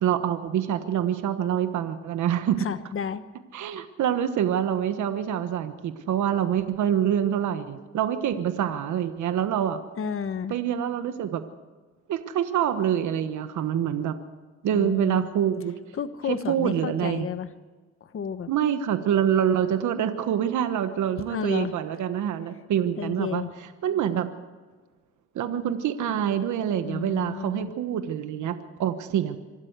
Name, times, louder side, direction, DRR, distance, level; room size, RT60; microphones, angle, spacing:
voice 1, 0.0-2.6 3.5-9.8 10.5-11.4 12.1-14.1 14.6-15.8 16.3-17.3 18.5-23.4 23.8-24.3 25.3-29.4, right 9 dB, 75° right, 9 dB, 1.3 m, -26 dB
voice 2, 2.6-3.2 10.0-10.5 14.7-15.3 15.9-17.5 18.0-18.5 21.3-21.7 23.0-23.5 26.8-27.7, left 7 dB, 45° left, 11 dB, 1.1 m, -31 dB
25.5 x 13.0 x 8.1 m, 1.4 s
cardioid pair, 90°, 30 cm